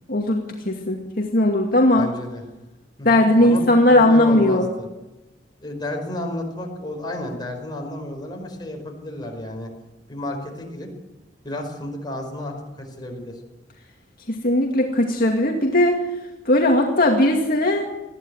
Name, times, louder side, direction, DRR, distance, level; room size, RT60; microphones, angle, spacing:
voice 1, 0.1-2.1 3.0-4.6 14.3-16.0 16.5-17.9, left 1 dB, 55° left, 1 dB, 2.3 m, -18 dB
voice 2, 1.9-2.4 3.0-4.9 5.6-9.7 10.1-10.9 11.4-13.4, left 1 dB, 25° left, 2 dB, 4.9 m, -32 dB
20.5 x 14.5 x 9.5 m, 1.0 s
head